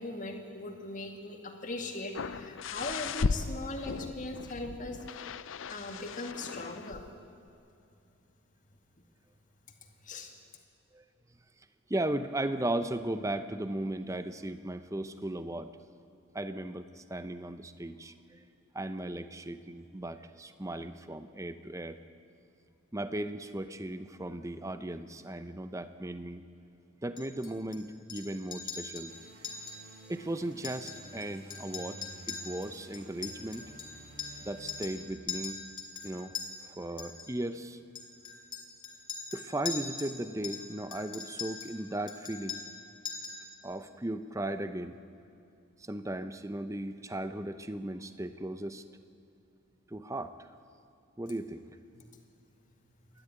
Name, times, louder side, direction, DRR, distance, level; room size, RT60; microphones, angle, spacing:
voice 1, 0.0-5.3 5.7-7.0 10.0-10.3 51.9-52.0, left 2 dB, 40° left, 3 dB, 2.3 m, -39 dB
sound 1, 2.1-7.1 7.5-7.6, left 4 dB, 75° left, 0.6 m, -36 dB
voice 2, 11.9-15.7 16.3-18.4 18.7-22.0 22.9-26.5 27.0-29.2 30.1-32.0 32.3-33.7 34.5-35.6 36.0-37.8 39.3-42.6 43.6-45.0 45.8-48.8 49.9-50.3 51.2-51.6, right 1 dB, 15° right, 11 dB, 0.7 m, -36 dB
Chink clink, 27.2-27.8 28.1-28.3 28.5-29.1 29.4-29.8 30.1-30.2 30.5-31.2 31.5-34.4 34.7-35.0 35.3-36.4 37.0-37.3 38.0-40.2 40.4-41.7 42.1-42.8 43.1-43.4, left 5 dB, 25° left, 2.9 m, -40 dB
sound 2, 29.1-35.0, right 2 dB, 50° right, 1.7 m, -52 dB
29.0 x 12.0 x 9.1 m, 2.6 s
head